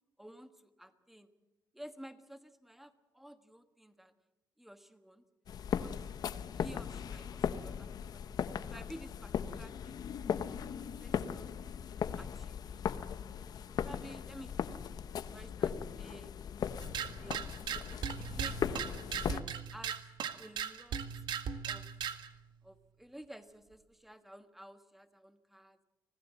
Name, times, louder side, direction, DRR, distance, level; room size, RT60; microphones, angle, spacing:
voice 1, 0.2-1.3 1.7-4.1 4.6-5.2 5.8-5.9 6.6-8.2 8.6-10.0 10.5-10.7 11.0-11.5 12.2-12.6 13.8-14.8 15.3-16.3 17.2-17.4 17.7-18.8 19.2-19.4 19.7-20.0 20.4-21.0 21.6-21.9 22.6-25.8, equal, 5° right, 10 dB, 1.4 m, -52 dB
sound 1, 5.5-19.4, left 8 dB, 60° left, 0.9 m, -38 dB
sound 2, 16.8-22.3, right 8 dB, 85° right, 1.6 m, -38 dB
25.5 x 18.5 x 7.5 m, 1.0 s
wide cardioid pair, 150°, 8 cm